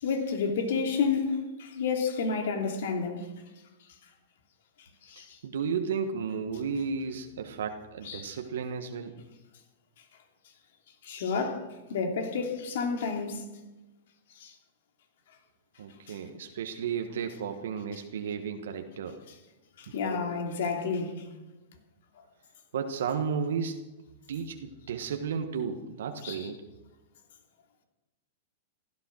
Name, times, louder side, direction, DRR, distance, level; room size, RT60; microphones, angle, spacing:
voice 1, 0.0-3.3 5.0-5.4 8.0-8.4 11.0-13.5 14.4-14.5 16.1-16.2 19.8-21.2 26.2-26.5, left 5 dB, 65° left, 2.9 m, -30 dB
voice 2, 5.2-9.1 15.8-19.2 19.9-20.0 22.7-23.9 24.3-26.6, right 6 dB, 75° right, 1.3 m, -33 dB
15.5 x 13.5 x 6.3 m
hypercardioid pair, 115°, 0 cm